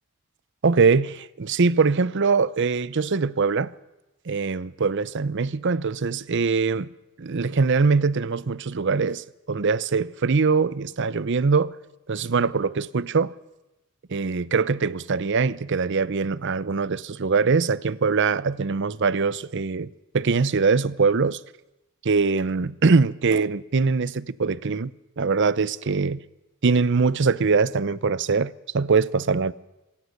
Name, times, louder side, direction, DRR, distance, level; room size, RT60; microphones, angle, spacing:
voice 1, 0.6-3.7 4.3-6.9 7.2-11.7 12.1-13.3 14.1-19.9 20.1-21.4 22.0-24.9 25.2-26.2 26.6-29.5, right 4 dB, 60° right, 0.6 m, -22 dB
26.0 x 16.0 x 6.6 m
head